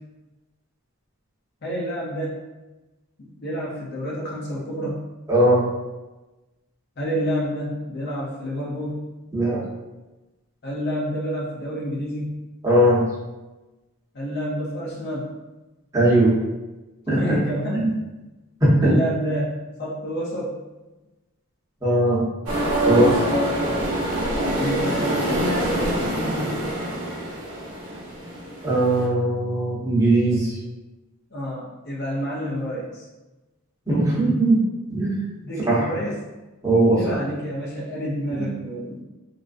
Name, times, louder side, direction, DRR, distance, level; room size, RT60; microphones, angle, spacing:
voice 1, 1.6-2.4 3.2-5.1 7.0-9.1 10.6-12.4 14.1-15.3 17.1-17.9 18.8-20.6 24.5-26.8 31.3-33.1 35.4-36.2 37.0-39.0, equal, 50° left, -4 dB, 0.5 m, -29 dB
voice 2, 5.3-5.6 9.3-9.6 12.6-13.0 15.9-16.3 17.1-17.4 17.7-17.9 18.6-19.0 21.8-22.2 22.9-23.2 28.6-30.6 33.9-34.6 34.9-35.2 35.6-35.9 36.6-37.2 38.3-38.5, right 1 dB, 15° right, -10 dB, 0.8 m, -19 dB
sound 1, 22.5-29.1, right 1 dB, 80° right, 0.7 m, -25 dB
2.4 x 2.1 x 2.4 m, 1.1 s
head